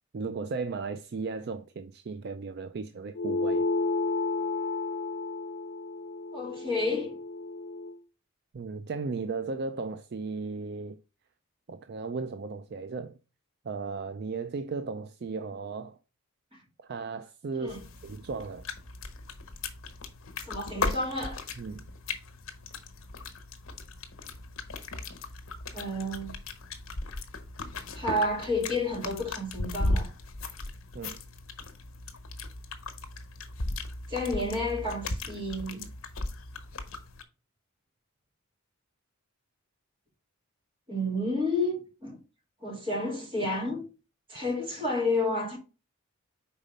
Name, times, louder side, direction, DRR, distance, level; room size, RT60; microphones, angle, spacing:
voice 1, 0.1-3.6 8.5-11.0 11.7-13.2 13.6-16.0 16.8-17.8 18.0-18.6 21.6-21.9 30.9-31.2, right 4 dB, 50° right, 0.4 m, -36 dB
sound 1, 3.2-8.0, left 3 dB, 60° left, 0.6 m, -31 dB
voice 2, 6.3-7.2 16.5-16.6 17.6-17.8 20.4-21.4 25.7-26.3 27.9-30.1 34.1-35.9 40.9-42.2 42.6-43.9 44.3-45.6, left 2 dB, 25° right, 2.3 m, -30 dB
sound 2, 17.7-37.2, left 2 dB, 75° left, 1.2 m, -37 dB
5.3 x 4.1 x 5.2 m
head